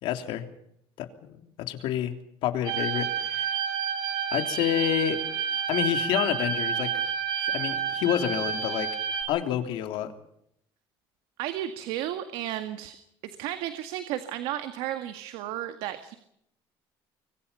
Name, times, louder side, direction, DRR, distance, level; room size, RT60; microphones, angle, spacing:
voice 1, 0.0-0.4 1.0-1.3 1.7-2.1 2.4-3.5 4.3-5.2 5.7-6.9 7.4-8.9 9.3-10.1, left 11 dB, 70° left, 7 dB, 3.2 m, -28 dB
sound 1, 2.6-9.2, right 7 dB, 55° right, 5.5 m, -29 dB
voice 2, 11.4-13.0 13.4-16.1, right 12 dB, 85° right, 9 dB, 2.0 m, -33 dB
25.5 x 23.5 x 5.6 m, 0.74 s
cardioid pair, 150°, 9 cm